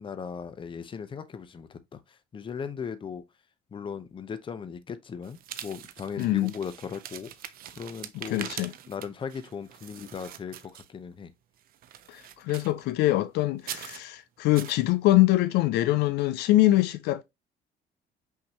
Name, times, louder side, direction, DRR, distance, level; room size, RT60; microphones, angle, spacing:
voice 1, 0.0-3.2 3.7-7.3 7.7-8.5 8.9-11.3, left 6 dB, 30° left, 0.6 m, -38 dB
sound 1, 5.2-11.1 11.6-12.9 13.6-14.1 14.5-14.8, right 11 dB, 60° right, 0.5 m, -43 dB
voice 2, 6.2-6.5 8.1-8.7 12.1-17.2, left 16 dB, 80° left, 0.4 m, -24 dB
5.7 x 2.7 x 2.9 m
cardioid pair, 110°, 17 cm